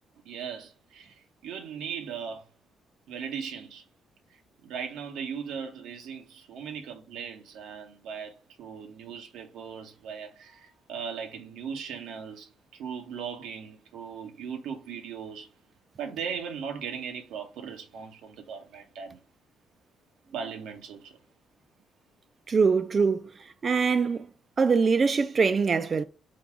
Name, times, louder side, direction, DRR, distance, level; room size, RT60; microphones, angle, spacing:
voice 1, 0.2-1.2 1.4-2.5 3.1-3.8 4.6-15.5 16.0-19.2 20.3-21.2, right 7 dB, 85° right, 0.8 m, -38 dB
voice 2, 22.5-24.3 24.6-26.0, right 5 dB, 40° right, 0.3 m, -23 dB
3.9 x 2.3 x 4.6 m
cardioid pair, 90°, 0 cm